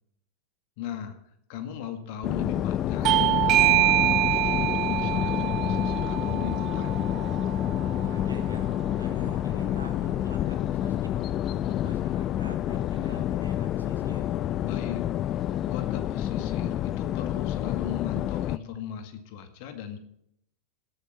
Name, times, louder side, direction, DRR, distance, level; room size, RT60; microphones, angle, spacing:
voice 1, 0.8-1.2 1.5-6.9 14.6-15.0 15.6-20.0, left 8 dB, 45° left, 8 dB, 2.1 m, -37 dB
sound 1, 2.2-18.6, left 11 dB, 30° left, 0.4 m, -28 dB
Bell / Doorbell, 3.0-8.2, right 17 dB, 35° right, 0.4 m, -25 dB
voice 2, 7.9-8.7 9.0-11.1 11.5-14.3, right 4 dB, 80° right, 5 dB, 2.3 m, -46 dB
18.5 x 8.9 x 4.4 m, 0.72 s
figure-of-eight pair, 90°, 0 cm